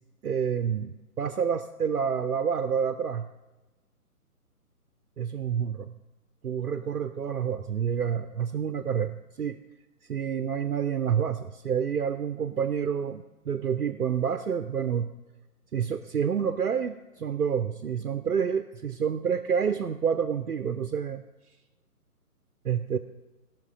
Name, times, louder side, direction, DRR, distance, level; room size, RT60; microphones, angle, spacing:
voice 1, 0.2-3.3 5.2-5.9 6.4-9.6 10.1-15.1 15.7-21.2 22.6-23.0, right 7 dB, 70° right, 9 dB, 0.7 m, -28 dB
16.5 x 6.0 x 5.1 m, 1.1 s
figure-of-eight pair, 145°, 46 cm